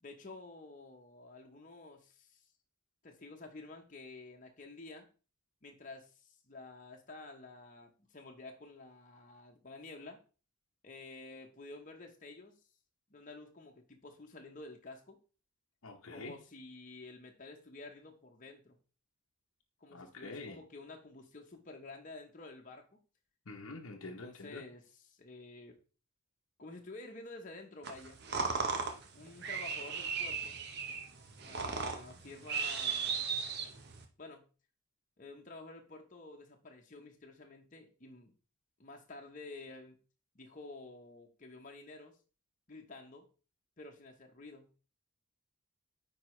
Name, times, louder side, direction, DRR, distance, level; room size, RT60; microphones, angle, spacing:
voice 1, 0.0-2.4 3.0-5.1 5.6-10.2 10.8-12.5 13.1-15.2 16.1-18.8 19.8-22.9 24.0-25.8 26.6-28.2 29.1-30.6 31.4-33.3 34.2-34.5 35.2-38.3 38.8-40.0 40.3-42.2 42.7-43.3 43.8-44.7, left 3 dB, 35° left, 1.0 m, -50 dB
voice 2, 15.8-16.3 19.9-20.6 23.5-24.6, left 3 dB, 70° left, 0.9 m, -46 dB
sound 1, 27.8-34.1, right 5 dB, 50° right, 1.0 m, -37 dB
9.4 x 4.7 x 3.2 m
head